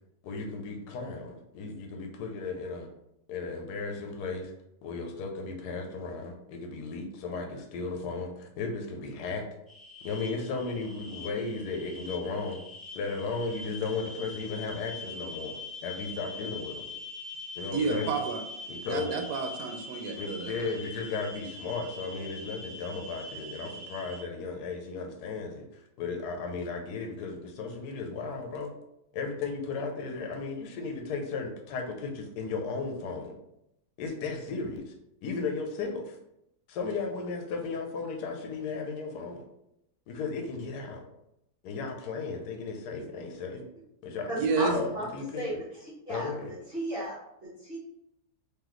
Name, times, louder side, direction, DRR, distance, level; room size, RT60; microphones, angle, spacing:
voice 1, 0.2-2.9 3.3-4.5 4.8-9.4 10.0-12.6 12.9-15.6 15.8-16.8 17.6-18.1 18.7-19.1 20.2-28.7 29.1-33.4 34.0-34.9 35.2-36.2 36.7-39.4 40.1-41.0 41.6-43.6 44.0-44.3 44.6-45.4 46.1-46.5, left 4 dB, 80° left, 3 dB, 1.2 m, -35 dB
sound 1, 9.7-24.2, left 2 dB, ahead, 1.2 m, -43 dB
voice 2, 17.7-18.4 18.9-20.5 44.3-44.7, right 4 dB, 80° right, 5 dB, 1.2 m, -30 dB
voice 3, 44.3-45.0 45.3-47.8, equal, 40° right, -9 dB, 1.2 m, -35 dB
3.9 x 3.1 x 3.0 m, 0.81 s
omnidirectional pair, 1.7 m